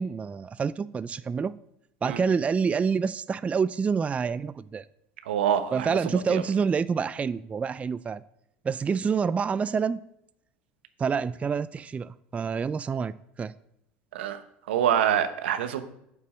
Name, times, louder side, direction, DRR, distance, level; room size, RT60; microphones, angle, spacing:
voice 1, 0.0-1.5 2.0-4.9 5.7-8.2 8.6-10.0 11.0-13.5, right 6 dB, 25° right, 16 dB, 0.3 m, -27 dB
voice 2, 5.2-6.4 14.1-14.4 14.7-15.8, right 9 dB, 85° right, 9 dB, 0.9 m, -26 dB
8.5 x 6.9 x 5.0 m, 0.78 s
hypercardioid pair, 85°, 6 cm